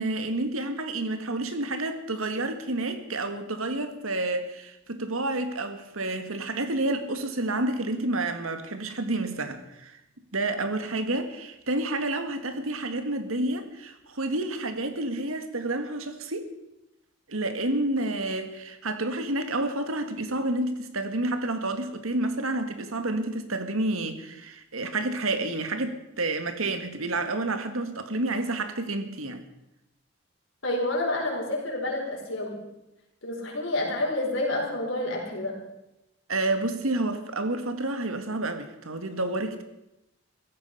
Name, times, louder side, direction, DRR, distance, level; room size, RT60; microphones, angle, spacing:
voice 1, 0.0-10.0 10.3-16.5 17.3-29.4 36.3-39.6, right 2 dB, 85° right, 1.9 m, -29 dB
voice 2, 30.6-32.6 33.2-35.6, left 2 dB, 70° left, 5.1 m, -29 dB
16.5 x 15.0 x 5.7 m
head